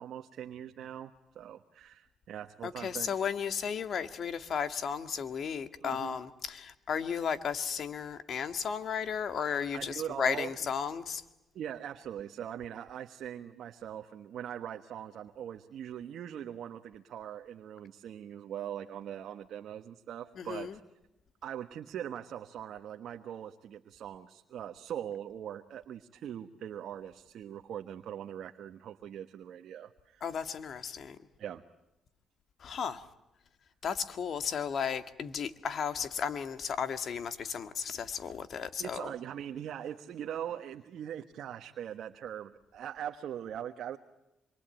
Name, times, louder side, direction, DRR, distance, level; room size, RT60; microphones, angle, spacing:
voice 1, 0.0-3.1 5.8-6.2 9.7-10.5 11.5-20.8 21.4-30.2 31.4-31.6 38.8-44.0, right 10 dB, 70° right, 1.3 m, -41 dB
voice 2, 2.6-11.2 20.4-20.8 30.2-31.2 32.6-33.0 33.8-39.1, left 7 dB, 60° left, 1.8 m, -34 dB
26.5 x 23.5 x 9.1 m
cardioid pair, 90°, 0 cm